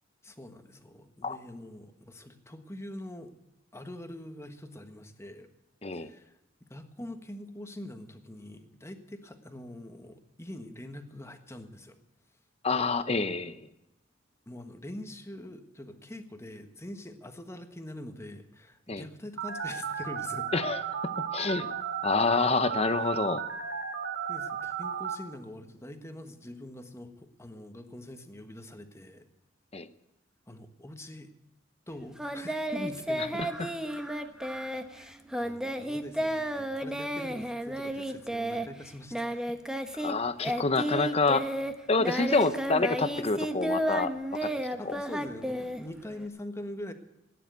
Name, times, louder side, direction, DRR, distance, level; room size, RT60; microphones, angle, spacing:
voice 1, 0.2-3.3 3.7-5.5 5.9-6.3 6.6-12.0 14.5-20.5 23.0-23.1 24.3-29.2 30.5-31.3 31.9-33.4 34.9-39.6 44.8-46.9, left 1 dB, 15° left, 7 dB, 1.4 m, -44 dB
voice 2, 12.6-13.6 18.9-19.0 20.5-20.8 21.3-21.7 22.0-23.4 29.7-29.9 40.0-41.5 41.9-44.1 44.4-44.5 44.8-44.9, left 3 dB, 35° left, 12 dB, 0.8 m, -27 dB
Telephone, 19.4-25.1, right 7 dB, 80° right, 2.3 m, -34 dB
Singing, 32.2-40.1 40.4-46.3, equal, 5° right, 0.9 m, -32 dB
17.0 x 10.0 x 8.0 m, 0.90 s
head